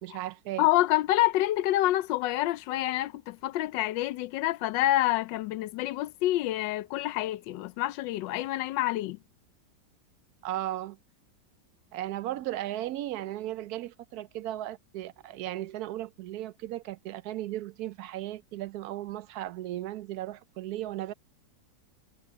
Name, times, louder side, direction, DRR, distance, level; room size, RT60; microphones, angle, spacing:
voice 1, 0.0-0.7 10.4-11.0 11.9-21.1, right 14 dB, 70° right, 1.0 m, -36 dB
voice 2, 0.6-9.2, left 15 dB, 85° left, 1.3 m, -27 dB
omnidirectional pair, 1.9 m